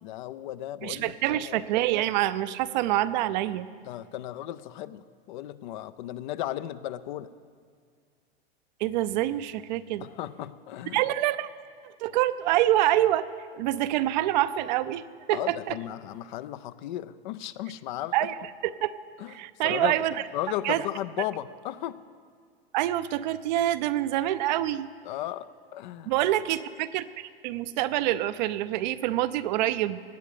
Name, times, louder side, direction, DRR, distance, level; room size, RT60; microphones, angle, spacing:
voice 1, 0.0-1.6 3.9-7.3 10.0-11.0 15.3-18.3 19.2-19.3 19.6-20.0 20.3-22.0 25.0-26.1, left 13 dB, 50° left, 15 dB, 0.6 m, -35 dB
voice 2, 0.8-3.7 8.8-10.0 10.9-11.5 11.8-13.3 13.5-15.8 18.1-18.4 18.6-18.9 19.3-20.1 20.6-20.8 22.7-24.9 26.1-30.0, right 14 dB, 50° right, 14 dB, 0.6 m, -26 dB
17.5 x 10.0 x 5.0 m, 2.1 s
hypercardioid pair, 100°, 30 cm